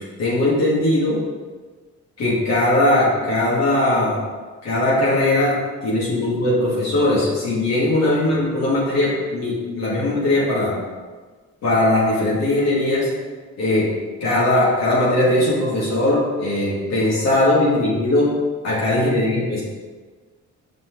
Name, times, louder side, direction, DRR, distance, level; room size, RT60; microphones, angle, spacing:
voice 1, 0.2-1.2 2.2-4.2 4.6-10.8 11.6-13.1 13.6-13.9 14.2-18.3 18.6-19.6, left 1 dB, 60° left, -6 dB, 1.9 m, -19 dB
6.0 x 5.5 x 3.1 m, 1.4 s
cardioid pair, 90°, 30 cm